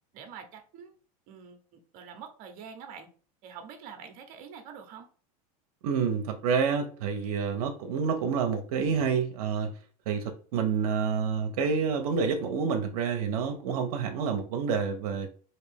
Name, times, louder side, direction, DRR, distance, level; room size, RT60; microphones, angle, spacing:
voice 1, 0.1-0.9 1.3-3.1 3.4-5.1, right 7 dB, 45° right, 0.8 m, -46 dB
voice 2, 5.8-9.7 10.1-15.3, right 6 dB, 80° right, 0.7 m, -28 dB
3.3 x 2.7 x 3.4 m
supercardioid pair, 130°, 19 cm